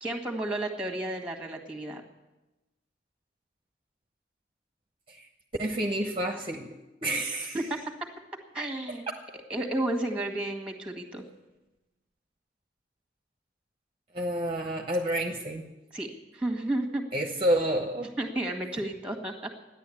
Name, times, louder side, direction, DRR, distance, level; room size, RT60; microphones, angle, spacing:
voice 1, 0.0-2.0 7.5-8.1 8.5-9.1 9.5-11.3 15.9-17.0 18.2-19.5, right 1 dB, 5° right, 3 dB, 1.8 m, -32 dB
voice 2, 5.6-6.7 7.0-7.6 14.1-15.6 17.1-18.1, right 1 dB, 30° right, 2 dB, 1.0 m, -29 dB
14.0 x 10.5 x 8.6 m, 1.1 s
head